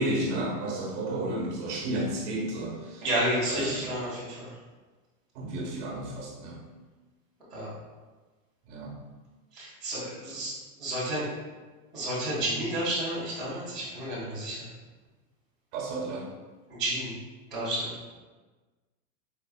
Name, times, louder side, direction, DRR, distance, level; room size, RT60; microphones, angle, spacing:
voice 1, 0.0-3.0 3.5-4.0 5.3-6.6 8.7-8.9 15.7-16.3, right 1 dB, 45° right, -1 dB, 1.0 m, -32 dB
voice 2, 3.0-4.5 7.5-7.7 9.5-10.5 10.8-11.3 11.9-14.7 16.7-17.1 17.5-17.9, right 1 dB, ahead, -21 dB, 0.3 m, -31 dB
4.6 x 3.2 x 2.2 m, 1.3 s
supercardioid pair, 160°, 46 cm